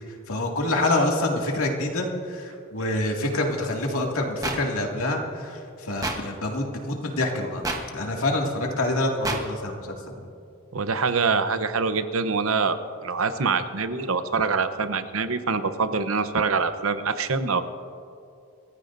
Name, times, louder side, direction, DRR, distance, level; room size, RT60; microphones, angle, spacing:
voice 1, 0.1-7.6 7.9-10.3, left 1 dB, 85° left, 0 dB, 2.2 m, -26 dB
sound 1, 4.4-4.6 6.0-6.2 7.6-7.8 9.2-9.4, right 2 dB, 15° right, 1.1 m, -27 dB
voice 2, 10.7-17.6, right 4 dB, 80° right, 10 dB, 0.8 m, -25 dB
27.0 x 14.5 x 2.6 m, 2.5 s
head